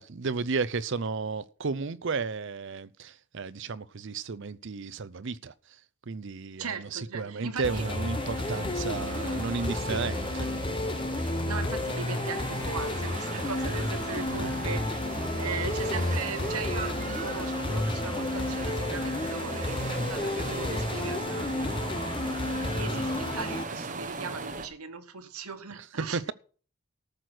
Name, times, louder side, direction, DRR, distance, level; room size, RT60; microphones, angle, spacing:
voice 1, 0.0-5.5 6.1-10.5 14.3-14.6 26.0-26.3, right 4 dB, 55° right, 0.6 m, -33 dB
voice 2, 6.5-7.8 11.4-15.0 15.4-26.3, right 5 dB, 85° right, 1.3 m, -39 dB
sound 1, 7.6-23.6, left 2 dB, 20° left, 0.8 m, -31 dB
sound 2, 7.6-24.7, right 3 dB, 35° right, 1.2 m, -39 dB
13.5 x 6.5 x 6.1 m
head